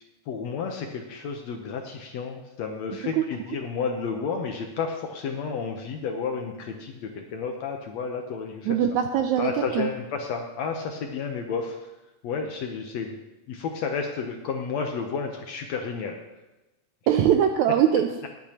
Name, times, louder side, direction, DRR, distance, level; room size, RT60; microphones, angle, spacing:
voice 1, 0.3-8.8 9.4-11.8 12.2-13.1 13.5-16.2, left 5 dB, 70° left, 3 dB, 1.8 m, -31 dB
voice 2, 8.7-9.9 17.1-18.3, right 9 dB, 80° right, 6 dB, 1.7 m, -22 dB
21.0 x 8.4 x 2.9 m, 1.0 s
omnidirectional pair, 3.9 m